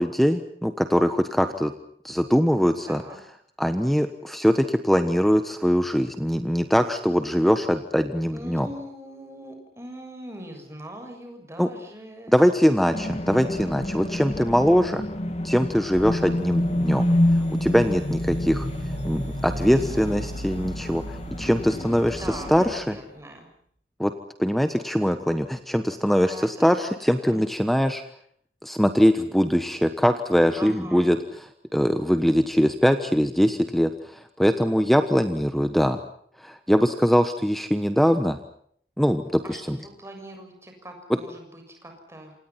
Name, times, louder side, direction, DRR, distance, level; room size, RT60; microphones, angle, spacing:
voice 1, 0.0-1.7 2.0-3.0 3.6-8.7 11.6-11.7 12.3-15.0 15.4-17.0 17.6-18.7 19.0-22.2 22.5-23.0 24.0-24.1 24.4-28.0 28.6-31.2 31.7-36.0 36.4-38.4 39.0-39.8, equal, ahead, 8 dB, 1.2 m, -22 dB
voice 2, 2.9-3.2 8.3-12.4 19.7-20.2 22.0-23.5 26.3-27.4 30.6-31.1 39.4-42.3, right 1 dB, 15° right, 4 dB, 7.0 m, -41 dB
sound 1, 12.9-22.7, left 1 dB, 35° left, 2.2 m, -28 dB
sound 2, 15.4-23.0, equal, 80° right, 4.0 m, -39 dB
28.0 x 27.0 x 5.9 m, 0.64 s
head